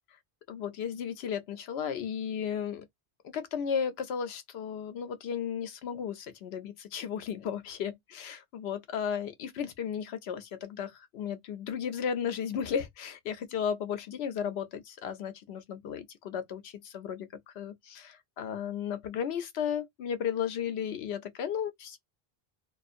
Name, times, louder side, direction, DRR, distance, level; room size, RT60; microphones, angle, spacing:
voice 1, 0.5-2.9 3.2-17.3 17.5-22.0, left 7 dB, 85° left, 0.9 m, -34 dB
2.5 x 2.4 x 2.4 m
omnidirectional pair, 1.0 m